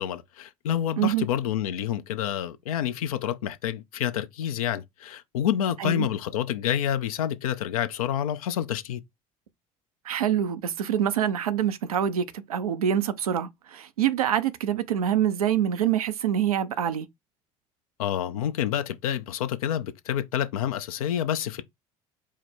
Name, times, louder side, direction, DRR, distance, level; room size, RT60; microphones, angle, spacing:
voice 1, 0.0-9.0 18.0-21.6, left 10 dB, 80° left, 0.5 m, -28 dB
voice 2, 10.1-17.1, right 9 dB, 85° right, 0.5 m, -25 dB
4.7 x 2.0 x 4.4 m
hypercardioid pair, 65°, 18 cm